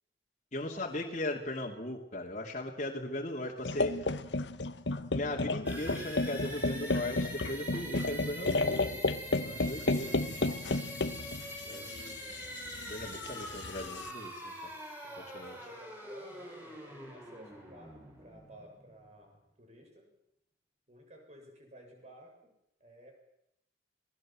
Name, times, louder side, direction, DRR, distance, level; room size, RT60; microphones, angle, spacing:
voice 1, 0.5-4.0 5.1-8.7 9.4-10.1 11.7-11.9 12.9-14.7 15.3-15.6, left 1 dB, 40° left, -1 dB, 2.8 m, -38 dB
sound 1, 3.6-14.1, left 2 dB, 85° left, 1.2 m, -33 dB
sound 2, 5.7-19.4, equal, 10° right, 7.3 m, -44 dB
voice 2, 8.5-9.1 11.6-12.5 13.0-14.0 15.0-20.1 20.9-22.6 22.8-23.1, equal, 40° right, 3 dB, 7.2 m, -55 dB
26.0 x 19.5 x 7.6 m, 0.81 s
head